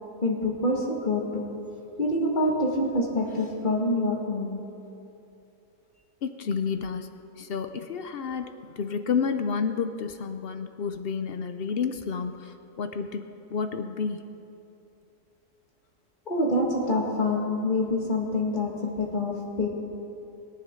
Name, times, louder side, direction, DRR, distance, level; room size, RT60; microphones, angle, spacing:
voice 1, 0.2-1.5 2.0-4.6 16.3-19.7, left 1 dB, 30° left, -2 dB, 2.0 m, -26 dB
voice 2, 6.2-7.1 7.4-14.5, left 6 dB, 65° left, 8 dB, 0.5 m, -30 dB
22.0 x 10.0 x 3.8 m, 2.8 s
omnidirectional pair, 1.7 m